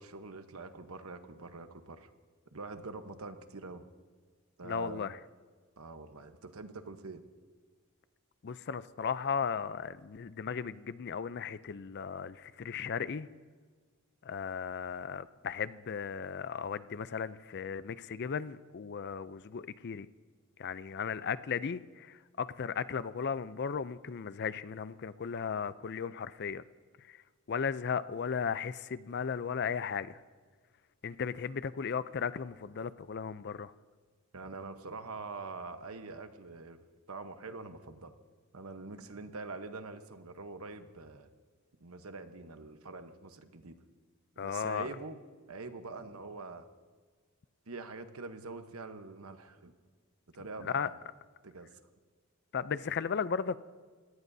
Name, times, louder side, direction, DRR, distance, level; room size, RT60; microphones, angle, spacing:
voice 1, 0.0-2.1 2.5-3.8 4.6-5.1 5.8-7.2 34.3-36.8 37.1-38.1 38.5-41.3 41.8-43.8 44.4-45.2 45.5-46.6 47.7-49.7 50.3-50.9 51.4-51.7, right 3 dB, 85° right, 8 dB, 1.1 m, -44 dB
voice 2, 4.6-5.2 8.4-13.3 14.2-20.1 20.6-26.6 27.1-27.2 27.5-30.2 31.0-33.7 44.4-44.9 50.6-50.9 52.5-53.6, left 6 dB, 50° left, 15 dB, 0.4 m, -36 dB
29.0 x 17.5 x 2.7 m, 1.5 s
head